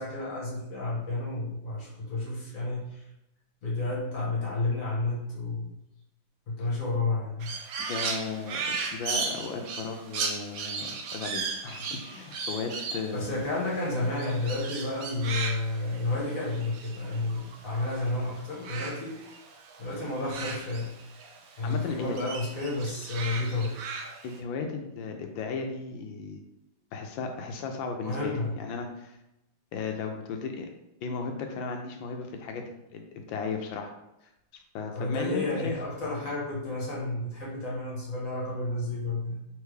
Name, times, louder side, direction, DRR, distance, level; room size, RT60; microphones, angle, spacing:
voice 1, 0.0-3.1 3.6-5.8 6.5-7.6 13.1-19.2 19.8-21.0 21.6-23.8 28.0-28.5 34.9-39.5, left 2 dB, 50° left, -5 dB, 1.4 m, -31 dB
Crow, 7.4-18.1 18.4-21.4 21.7-24.4, right 5 dB, 90° right, 0.7 m, -36 dB
voice 2, 7.8-13.3 21.6-22.2 24.2-26.4 26.9-29.2 29.7-30.7 31.0-33.9 34.7-35.7, left 5 dB, 75° left, 4 dB, 1.3 m, -35 dB
3.6 x 3.4 x 3.2 m, 0.88 s
omnidirectional pair, 2.2 m